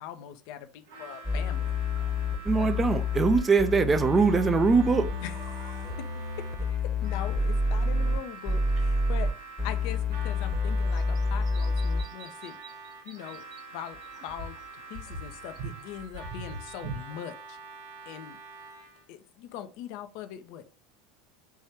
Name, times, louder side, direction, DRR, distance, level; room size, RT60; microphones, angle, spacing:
voice 1, 0.0-1.7 2.6-2.7 5.2-6.1 6.4-6.5 6.8-12.6 13.0-13.4 13.7-14.0 14.2-17.6 18.1-18.4 19.1-20.6, left 10 dB, 50° left, 0.5 m, -41 dB
Harmonica, 0.8-19.1, right 4 dB, 70° right, 1.1 m, -46 dB
sound 1, 0.9-1.4 1.9-3.7 4.0-4.9 5.1-6.1 7.0-7.1 8.4-9.3 10.3-10.4 10.8-13.7 13.9-17.2, right 3 dB, 40° right, 0.9 m, -45 dB
sound 2, 1.2-8.2 8.4-9.3 9.6-12.0, left 3 dB, 20° left, 1.0 m, -28 dB
voice 2, 2.4-5.1, right 4 dB, 20° right, 0.5 m, -22 dB
4.7 x 3.2 x 2.8 m
figure-of-eight pair, 75°, 0 cm